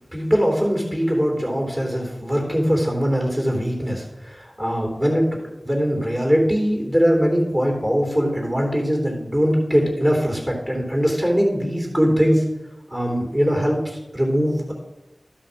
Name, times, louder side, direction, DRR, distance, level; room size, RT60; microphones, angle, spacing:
voice 1, 0.1-5.3 5.6-12.4 12.9-14.7, equal, 25° right, 0 dB, 3.2 m, -21 dB
12.5 x 5.7 x 5.5 m, 0.97 s
wide cardioid pair, 70°, 0 cm